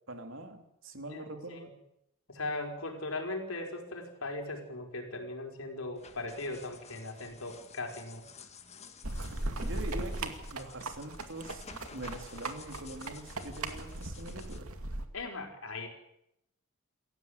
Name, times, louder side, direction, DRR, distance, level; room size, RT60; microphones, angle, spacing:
voice 1, 0.1-1.7 9.6-14.7, right 2 dB, 60° right, 5 dB, 3.3 m, -43 dB
voice 2, 1.1-1.7 2.3-8.2 15.1-15.9, left 2 dB, 70° left, 3 dB, 5.0 m, -39 dB
sound 1, 5.9-14.6, left 4 dB, 30° left, 1.9 m, -52 dB
sound 2, 9.0-15.0, right 2 dB, 80° right, 2.5 m, -38 dB
sound 3, 9.6-10.1 10.9-12.2 13.0-13.1, equal, 20° right, 2.7 m, -52 dB
28.0 x 15.0 x 8.3 m, 0.82 s
head